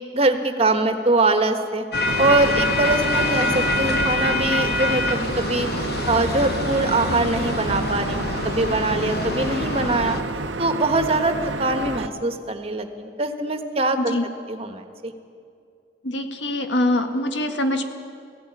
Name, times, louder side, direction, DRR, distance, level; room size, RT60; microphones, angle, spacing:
voice 1, 0.1-1.8 2.2-10.2 10.6-14.1 14.5-15.1, right 2 dB, 35° right, 7 dB, 1.3 m, -23 dB
sound 1, 1.9-10.2, left 2 dB, 60° left, 1.2 m, -25 dB
sound 2, 2.1-12.1, right 3 dB, 90° right, 0.8 m, -30 dB
voice 2, 14.0-14.3 16.0-17.8, left 1 dB, 75° left, 6 dB, 1.7 m, -23 dB
17.5 x 15.5 x 9.7 m, 2.4 s
head